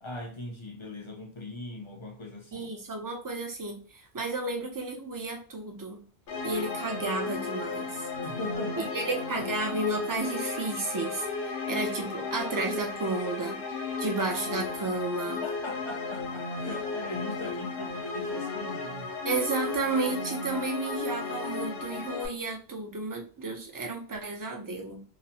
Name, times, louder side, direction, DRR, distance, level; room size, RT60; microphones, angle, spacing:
voice 1, 0.0-2.7 8.2-9.1 9.3-9.4 15.4-19.1, left 2 dB, 45° left, 0.4 m, -40 dB
voice 2, 2.5-6.0 6.4-8.0 8.8-11.3 11.7-13.6 14.0-15.4 19.2-25.0, right 3 dB, 25° right, 0.4 m, -32 dB
sound 1, 6.3-22.3, left 4 dB, 65° left, 0.8 m, -34 dB
2.9 x 2.1 x 2.8 m
omnidirectional pair, 1.1 m